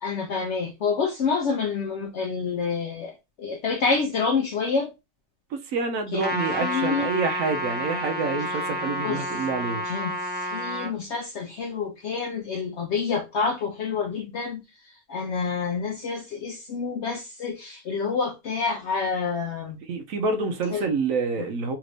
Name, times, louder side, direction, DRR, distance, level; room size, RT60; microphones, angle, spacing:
voice 1, 0.0-3.1 3.4-4.9 6.1-6.3 6.6-7.1 9.0-9.3 9.8-14.6 15.1-19.8 20.7-20.9, left 5 dB, 80° left, 0.6 m, -28 dB
voice 2, 5.5-9.8 19.8-21.8, right 4 dB, 70° right, 0.8 m, -27 dB
Trumpet, 6.2-10.9, equal, 15° left, 0.3 m, -30 dB
3.4 x 2.5 x 3.2 m
omnidirectional pair, 1.8 m